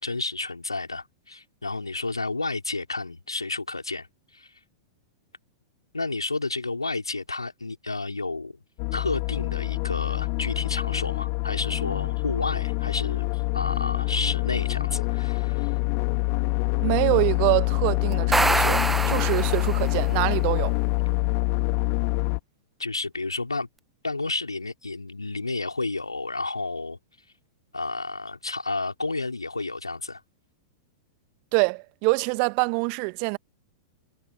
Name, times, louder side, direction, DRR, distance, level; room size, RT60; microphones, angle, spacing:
voice 1, 0.0-4.1 4.3-4.5 5.9-8.6 8.9-13.3 13.5-15.7 22.8-23.7 24.0-27.0 27.7-30.2, left 3 dB, 80° left, 4.9 m, -31 dB
sound 1, 8.8-22.4, left 40 dB or more, 40° left, 2.1 m, -26 dB
voice 2, 16.8-20.8 31.5-33.4, right 40 dB or more, 40° right, 1.7 m, -25 dB
sound 2, 18.1-20.1, right 2 dB, 5° right, 1.3 m, -25 dB
figure-of-eight pair, 95°, 2 cm